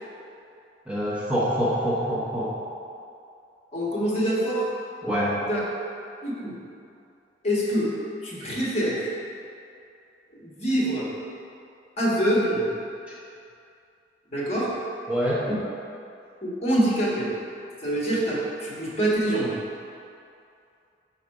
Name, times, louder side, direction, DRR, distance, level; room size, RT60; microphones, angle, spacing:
voice 1, 0.9-2.6 5.0-5.4 15.1-15.5, equal, 5° right, -9 dB, 0.8 m, -25 dB
voice 2, 3.7-4.7 5.5-5.6 6.2-6.6 7.4-7.9 8.2-9.0 10.3-11.1 12.0-12.7 14.3-14.7 16.4-17.3 17.8-19.6, right 1 dB, 35° left, -6 dB, 1.4 m, -25 dB
6.3 x 4.0 x 4.7 m, 2.5 s
head